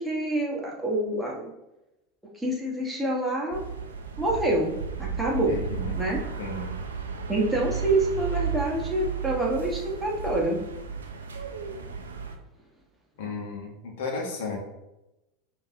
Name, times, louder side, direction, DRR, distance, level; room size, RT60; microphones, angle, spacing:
voice 1, 0.0-1.5 2.3-3.6 4.2-4.7 5.0-5.6 6.0-6.2 7.3-10.6, right 1 dB, 5° right, -4 dB, 1.2 m, -26 dB
sound 1, 3.5-12.4, right 6 dB, 80° right, 0.4 m, -34 dB
voice 2, 5.5-6.0 6.4-6.7 13.2-14.6, left 3 dB, 65° left, 0 dB, 1.0 m, -34 dB
5.2 x 2.8 x 2.7 m, 0.93 s
figure-of-eight pair, 80°, 0 cm